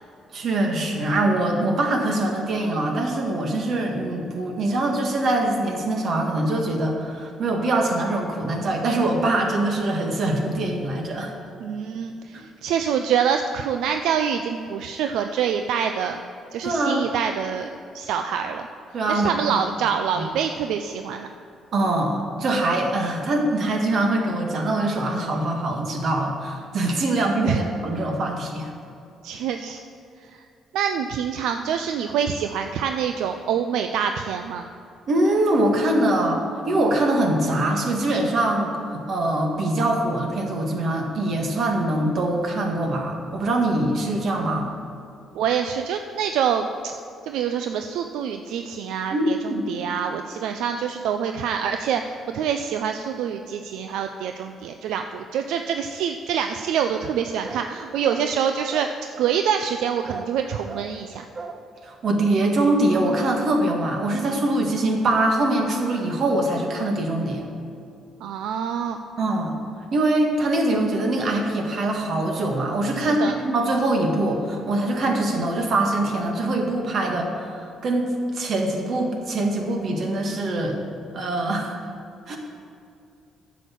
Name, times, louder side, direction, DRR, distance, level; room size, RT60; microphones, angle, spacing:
voice 1, 0.3-11.3 12.3-12.4 16.6-17.2 18.9-19.6 20.2-20.3 21.7-28.7 35.1-44.7 49.1-49.7 61.8-67.5 69.2-69.5 69.9-78.1 78.3-80.8 81.1-81.7 82.3-82.4, right 1 dB, 55° right, 2 dB, 1.7 m, -23 dB
voice 2, 11.6-16.2 16.5-17.7 17.9-18.7 19.1-21.3 27.4-27.6 29.2-29.8 30.7-34.7 45.3-46.9 47.2-49.4 49.7-58.9 59.2-61.2 68.2-69.0 73.0-73.3, right 8 dB, 85° right, 6 dB, 0.4 m, -26 dB
sound 1, 57.4-57.7 58.0-58.3 58.7-59.0 60.1-60.4 60.7-60.9 61.3-61.6, right 4 dB, 40° right, 0.7 m, -36 dB
9.7 x 6.5 x 7.4 m, 2.5 s
cardioid pair, 105°, 0 cm